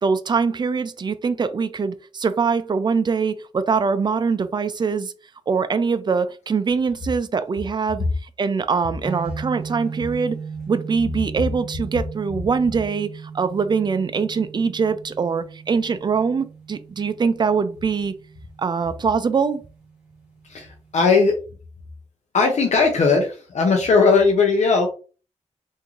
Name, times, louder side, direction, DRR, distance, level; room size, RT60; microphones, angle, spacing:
voice 1, 0.0-5.1 5.5-8.0 8.4-10.4 10.7-18.1 18.6-19.6, right 5 dB, 35° right, 0.4 m, -23 dB
sound 1, 9.0-21.1, right 5 dB, 10° right, 1.9 m, -37 dB
voice 2, 20.5-21.4 22.3-24.9, left 4 dB, 70° left, 0.7 m, -18 dB
3.5 x 2.7 x 3.0 m
wide cardioid pair, 95°, 12 cm